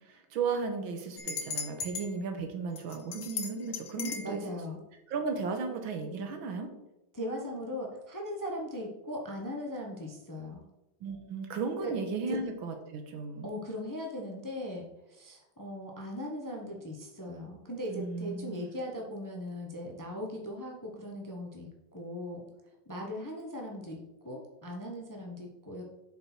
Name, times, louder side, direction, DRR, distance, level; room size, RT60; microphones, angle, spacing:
voice 1, 0.1-4.4 5.1-6.7 11.0-13.5 17.9-18.7, right 4 dB, 80° right, 4 dB, 1.9 m, -35 dB
sound 1, 1.2-2.1 2.8-4.3, left 6 dB, 75° left, 1.7 m, -37 dB
voice 2, 4.0-4.8 7.1-10.7 11.8-11.9 12.3-12.4 13.4-22.4 22.9-25.8, equal, 15° left, 0 dB, 0.7 m, -39 dB
7.7 x 5.8 x 4.4 m, 0.94 s
omnidirectional pair, 2.2 m